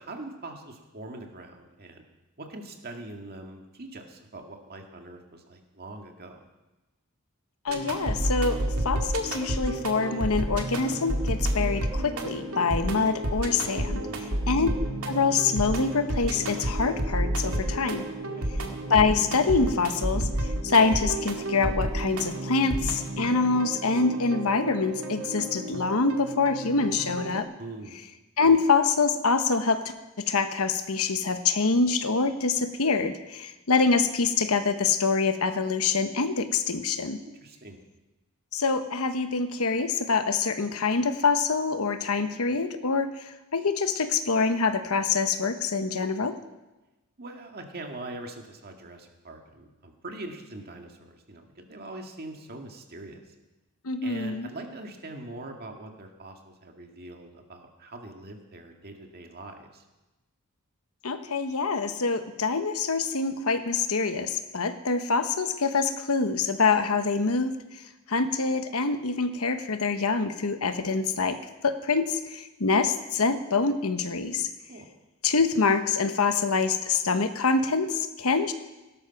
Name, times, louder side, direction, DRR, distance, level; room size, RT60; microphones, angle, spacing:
voice 1, 0.0-2.0 2.4-6.4 14.0-14.5 18.4-18.5 27.6-28.0 37.2-37.8 47.2-53.3 54.0-59.8 74.7-74.9, right 2 dB, 45° right, 3 dB, 2.1 m, -42 dB
voice 2, 7.6-8.6 8.8-14.0 14.5-14.7 15.1-18.1 18.9-27.5 28.4-37.2 38.5-46.3 53.8-54.5 61.0-67.5 68.1-71.4 71.6-74.5 75.2-78.5, left 4 dB, 70° left, 9 dB, 1.1 m, -25 dB
sound 1, 7.7-27.4, right 1 dB, 80° right, 2.2 m, -31 dB
17.0 x 12.5 x 5.9 m, 1.1 s
head